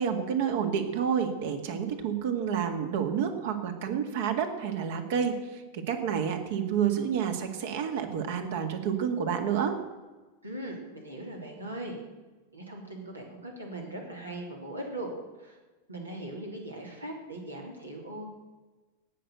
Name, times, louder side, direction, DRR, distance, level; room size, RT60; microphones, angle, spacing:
voice 1, 0.0-9.8, right 7 dB, 55° right, 6 dB, 1.9 m, -29 dB
voice 2, 10.4-12.0 12.5-15.1 15.4-15.6 15.9-18.3, right 1 dB, 80° right, 0 dB, 3.3 m, -39 dB
17.5 x 6.9 x 8.0 m, 1.2 s
figure-of-eight pair, 90°, 0 cm